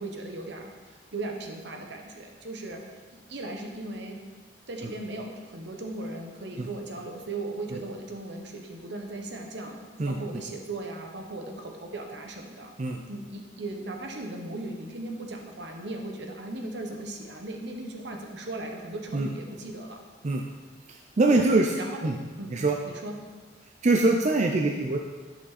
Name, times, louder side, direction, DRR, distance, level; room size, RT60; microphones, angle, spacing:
voice 1, 0.0-4.2 4.7-12.7 13.1-20.0 21.3-21.4 21.7-22.1 22.4-22.5 22.9-23.2, right 2 dB, 70° right, 2 dB, 1.2 m, -37 dB
voice 2, 20.9-21.7 22.0-22.2 22.5-22.8 23.8-25.0, right 2 dB, 40° right, 2 dB, 0.5 m, -23 dB
9.7 x 5.9 x 4.2 m, 1.4 s
head